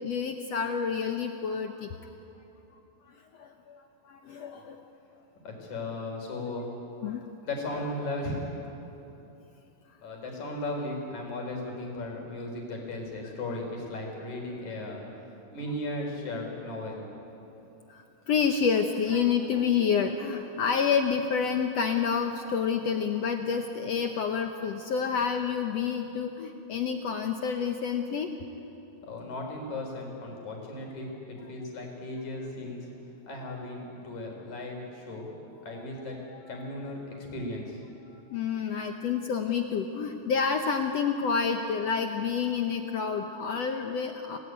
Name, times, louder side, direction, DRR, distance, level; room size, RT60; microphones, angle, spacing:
voice 1, 0.0-2.1 3.1-4.8 7.0-7.3 17.9-28.3 38.3-44.4, left 6 dB, 70° left, 5 dB, 1.5 m, -29 dB
voice 2, 5.4-6.7 7.4-8.5 10.0-15.0 15.5-17.0 29.0-32.9 33.3-35.3 35.6-36.2 36.5-37.8, left 2 dB, 55° left, 1 dB, 5.5 m, -36 dB
28.0 x 18.5 x 9.5 m, 3.0 s
omnidirectional pair, 4.1 m